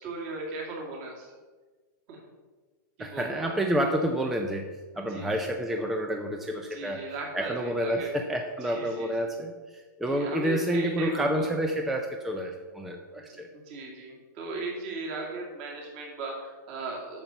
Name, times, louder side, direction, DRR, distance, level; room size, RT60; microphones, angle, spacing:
voice 1, 0.0-1.3 2.1-2.2 3.0-3.5 5.0-5.5 6.7-8.1 8.6-9.1 10.1-11.5 13.3-17.2, right 3 dB, 35° right, -1 dB, 2.5 m, -37 dB
voice 2, 3.0-7.0 7.3-13.5, equal, ahead, 3 dB, 0.4 m, -29 dB
8.9 x 6.7 x 7.1 m, 1.3 s
supercardioid pair, 175°, 10 cm